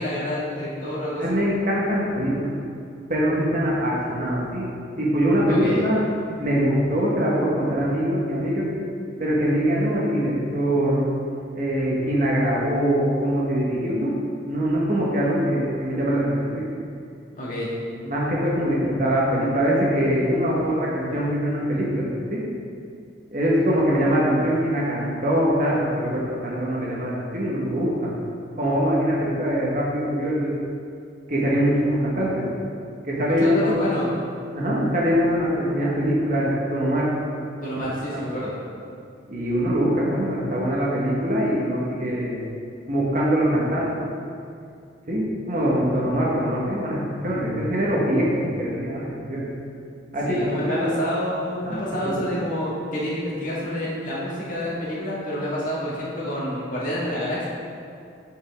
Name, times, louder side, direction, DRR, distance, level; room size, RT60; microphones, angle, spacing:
voice 1, 0.0-1.4 5.5-5.8 17.4-17.7 33.3-34.1 37.6-38.5 50.3-57.5, equal, 45° left, -7 dB, 1.8 m, -28 dB
voice 2, 1.2-2.5 3.1-4.7 5.0-6.0 6.4-8.7 9.2-11.1 11.5-14.1 14.5-16.6 18.0-22.4 23.3-28.1 28.5-30.5 31.3-32.5 33.0-33.9 34.5-37.1 38.1-38.3 39.3-42.4 42.9-44.0 45.1-49.5 50.1-50.9 51.6-51.8 52.0-52.3, equal, 45° right, -5 dB, 1.4 m, -23 dB
8.2 x 5.5 x 3.6 m, 2.4 s
head